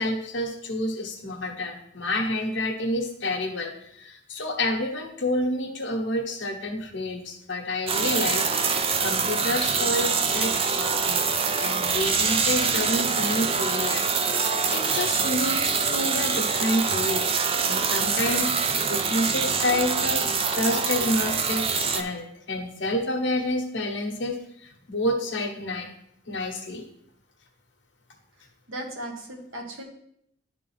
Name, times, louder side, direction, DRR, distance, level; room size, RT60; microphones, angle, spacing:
voice 1, 0.0-11.3 11.6-14.0 14.7-17.3 17.7-25.9 26.3-26.9, left 1 dB, 65° left, 2 dB, 1.1 m, -29 dB
sound 1, 7.9-22.0, right 5 dB, 30° right, 0.4 m, -25 dB
voice 2, 28.7-29.8, right 1 dB, 85° right, 1 dB, 1.3 m, -36 dB
11.0 x 3.7 x 3.3 m, 0.72 s
head